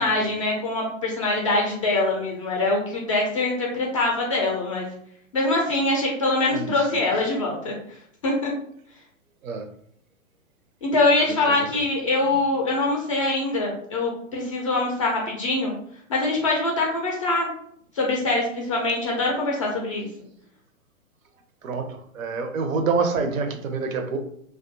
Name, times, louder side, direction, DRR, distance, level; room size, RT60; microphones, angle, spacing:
voice 1, 0.0-4.9 5.3-7.7 8.2-8.5 10.8-15.7 16.1-17.5 18.0-20.1, left 2 dB, 25° left, -1 dB, 0.3 m, -23 dB
voice 2, 6.5-7.1 9.4-9.7 11.3-11.4 21.6-24.2, right 4 dB, 75° right, 6 dB, 0.6 m, -27 dB
2.4 x 2.2 x 2.5 m, 0.67 s
hypercardioid pair, 125°, 41 cm